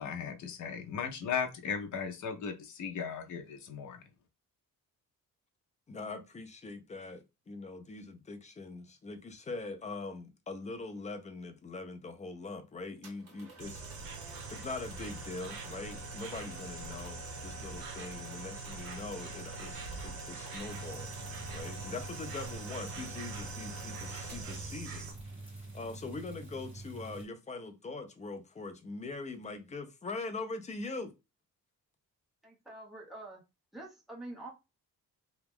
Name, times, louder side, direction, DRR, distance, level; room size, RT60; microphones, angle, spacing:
voice 1, 0.0-4.0, left 6 dB, 55° left, 0.7 m, -37 dB
voice 2, 5.9-13.8 14.5-25.1 25.4-31.1, left 3 dB, 20° left, 0.4 m, -42 dB
sound 1, 13.0-25.3, right 1 dB, 45° right, 1.6 m, -48 dB
Insect, 13.6-25.1, right 4 dB, 80° right, 0.8 m, -44 dB
sound 2, 20.7-27.3, right 2 dB, 15° right, 1.8 m, -46 dB
voice 3, 32.4-33.4 33.7-34.5, right 2 dB, ahead, 1.0 m, -46 dB
2.9 x 2.3 x 3.5 m
wide cardioid pair, 170°, 34 cm